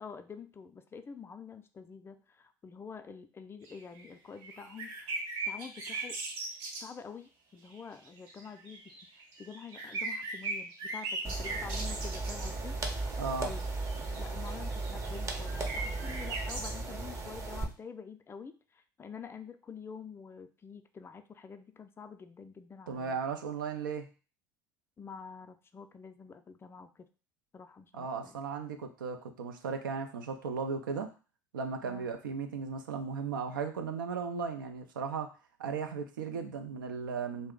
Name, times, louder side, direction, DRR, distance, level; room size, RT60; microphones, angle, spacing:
voice 1, 0.0-6.2 6.8-13.0 13.4-13.7 14.1-23.2 25.0-27.1 27.5-28.4 31.8-32.1, left 6 dB, 20° left, 8 dB, 0.4 m, -47 dB
sound 1, 3.7-4.1 4.4-6.8 7.7-7.8 8.1-12.5 13.3-16.7, right 3 dB, 55° right, 1.0 m, -39 dB
sound 2, 11.2-17.6, right 3 dB, 25° right, 0.6 m, -36 dB
voice 2, 13.2-13.5 22.9-24.1 27.9-31.1 31.5-35.3 35.6-37.5, right 5 dB, 80° right, 6 dB, 0.4 m, -36 dB
2.4 x 2.0 x 3.6 m, 0.35 s
figure-of-eight pair, 65°, 11 cm